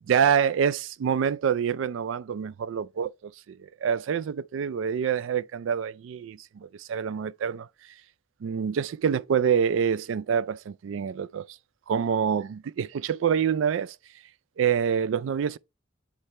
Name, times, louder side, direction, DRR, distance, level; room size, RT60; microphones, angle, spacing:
voice 1, 0.1-3.1 3.5-7.7 8.4-11.5 11.9-14.0 14.6-15.6, right 7 dB, 75° right, 0.3 m, -26 dB
8.2 x 3.3 x 4.2 m
head